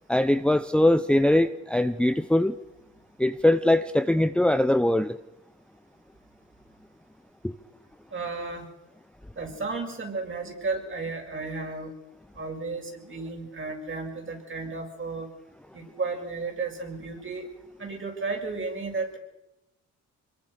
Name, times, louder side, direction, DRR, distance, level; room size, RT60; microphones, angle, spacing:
voice 1, 0.1-2.5 3.2-5.2 7.4-7.5, left 1 dB, 5° left, 12 dB, 0.9 m, -22 dB
voice 2, 8.1-8.7 9.4-11.9 12.3-15.3 15.7-17.5 17.8-19.2, right 3 dB, 40° right, 2 dB, 7.1 m, -33 dB
25.5 x 22.0 x 6.7 m, 0.92 s
cardioid pair, 90°, 30 cm